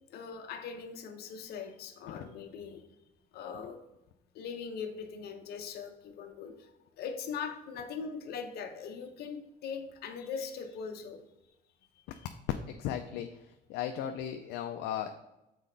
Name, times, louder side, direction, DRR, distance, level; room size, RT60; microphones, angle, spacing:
voice 1, 0.1-2.8 3.3-3.9 4.3-6.7 7.0-11.3 12.1-12.3, left 6 dB, 70° left, 5 dB, 0.8 m, -41 dB
voice 2, 12.7-13.3 13.7-15.1, left 10 dB, 85° left, 6 dB, 0.4 m, -36 dB
6.3 x 4.2 x 3.8 m, 0.91 s
cardioid pair, 110°, 17 cm